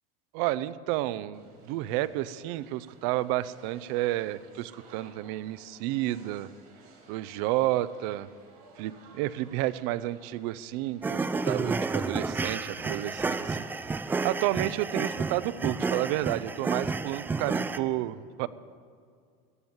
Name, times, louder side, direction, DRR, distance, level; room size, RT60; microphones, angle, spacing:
voice 1, 0.3-6.5 7.1-8.3 8.8-13.6 14.2-18.5, right 15 dB, 70° right, 17 dB, 0.6 m, -31 dB
sound 1, 1.3-14.5, right 4 dB, 90° right, 3.7 m, -57 dB
sound 2, 11.0-17.8, right 4 dB, 10° right, 0.4 m, -31 dB
15.0 x 9.6 x 7.2 m, 2.2 s
cardioid pair, 150°, 19 cm